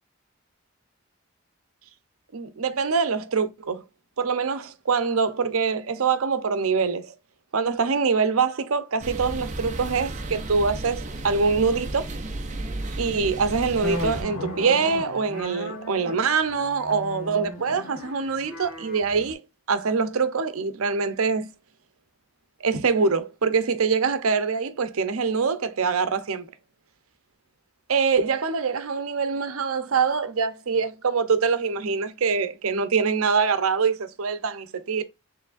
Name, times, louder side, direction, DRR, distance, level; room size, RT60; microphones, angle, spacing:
voice 1, 2.3-3.8 4.2-7.1 7.5-12.1 13.0-19.4 19.7-21.5 22.6-26.5 27.9-35.0, right 5 dB, 85° right, 0.7 m, -24 dB
sound 1, 9.0-14.2, right 2 dB, 35° right, 0.6 m, -33 dB
sound 2, 13.8-19.3, left 1 dB, 85° left, 1.2 m, -36 dB
4.7 x 3.3 x 2.4 m
head